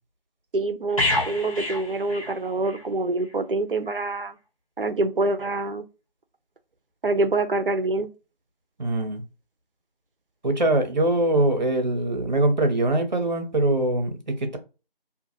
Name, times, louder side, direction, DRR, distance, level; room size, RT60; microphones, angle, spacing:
voice 1, 0.5-4.3 4.8-5.8 7.0-8.1, right 2 dB, 65° right, 0.6 m, -25 dB
sound 1, 1.0-2.9 3.2-3.4, left 2 dB, 35° left, 1.1 m, -28 dB
voice 2, 8.8-9.2 10.4-14.6, right 1 dB, 50° right, 0.9 m, -23 dB
2.7 x 2.5 x 2.6 m
figure-of-eight pair, 170°, 29 cm